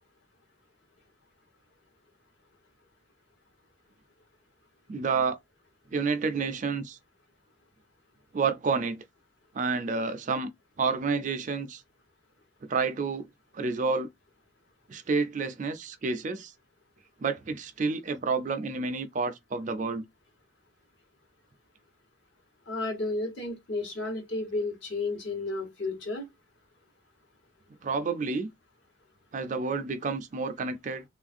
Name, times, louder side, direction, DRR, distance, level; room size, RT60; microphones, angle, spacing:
voice 1, 4.9-5.3 5.9-7.0 8.3-9.0 9.5-10.5 10.8-11.8 12.7-13.3 13.5-14.1 14.9-16.5 17.2-20.0 27.8-28.5 29.3-31.0, right 4 dB, 40° right, 0.4 m, -29 dB
voice 2, 22.7-26.2, left 2 dB, 65° left, 1.1 m, -32 dB
3.2 x 2.5 x 2.4 m
head